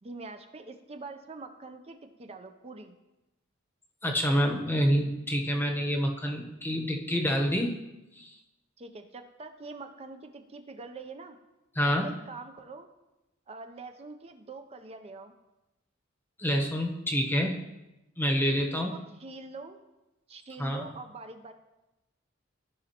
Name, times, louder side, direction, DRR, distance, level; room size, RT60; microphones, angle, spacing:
voice 1, 0.0-3.0 8.8-11.4 12.0-12.9 13.5-15.3 18.7-19.8 20.3-21.5, right 3 dB, 30° right, 7 dB, 0.5 m, -44 dB
voice 2, 4.0-7.7 8.2-8.4 11.7-12.1 16.4-17.6 18.2-18.9 20.6-20.9, equal, 10° left, 2 dB, 0.9 m, -27 dB
14.5 x 5.2 x 2.9 m, 0.99 s
head